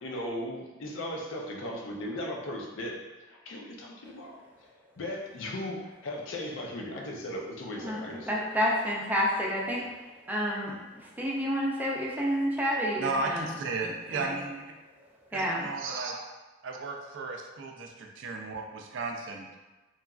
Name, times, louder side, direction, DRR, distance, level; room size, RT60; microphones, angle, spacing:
voice 1, 0.0-3.0 3.3-4.4 5.0-8.3, left 1 dB, 85° left, -1 dB, 0.5 m, -37 dB
voice 2, 7.8-13.5 13.8-14.3 15.0-15.7, equal, 10° right, -3 dB, 0.4 m, -30 dB
voice 3, 13.0-14.7 15.3-16.3 16.6-19.6, right 3 dB, 70° right, 2 dB, 0.4 m, -34 dB
2.9 x 2.4 x 2.3 m, 1.2 s
head